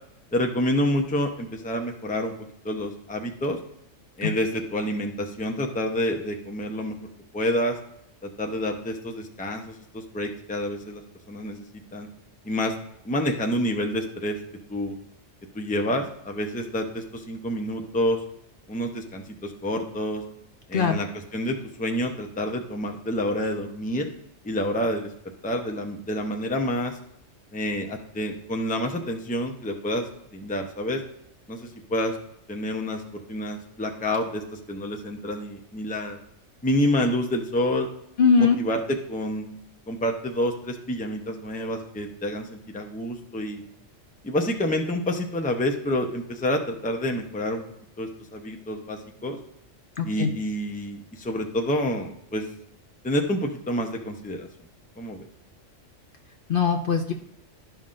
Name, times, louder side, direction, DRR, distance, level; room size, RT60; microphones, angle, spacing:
voice 1, 0.3-2.3 2.6-3.6 4.2-7.0 7.3-7.8 8.2-11.0 11.3-12.1 12.4-12.7 13.0-14.4 14.7-15.0 15.5-18.2 18.7-20.2 20.7-21.1 21.3-24.1 24.4-25.1 25.4-27.0 27.5-30.0 30.3-31.0 31.5-32.2 32.5-36.2 36.6-37.9 38.4-39.5 39.9-43.6 44.2-47.6 48.0-49.4 50.0-52.4 53.0-54.5 55.0-55.3, left 1 dB, 10° left, 4 dB, 0.6 m, -28 dB
voice 2, 38.2-38.6 50.0-50.3 56.5-57.1, left 5 dB, 55° left, 4 dB, 0.7 m, -21 dB
12.0 x 5.6 x 2.5 m, 0.77 s
omnidirectional pair, 1.3 m